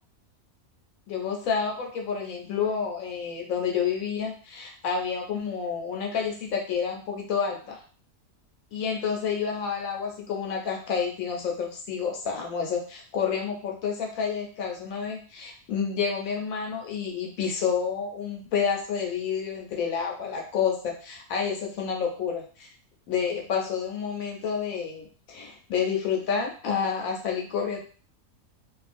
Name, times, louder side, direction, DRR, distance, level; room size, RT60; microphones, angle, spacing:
voice 1, 1.1-7.8 8.7-22.7 23.1-27.8, left 6 dB, 75° left, 1 dB, 1.0 m, -29 dB
2.4 x 2.3 x 2.4 m, 0.40 s
omnidirectional pair, 1.5 m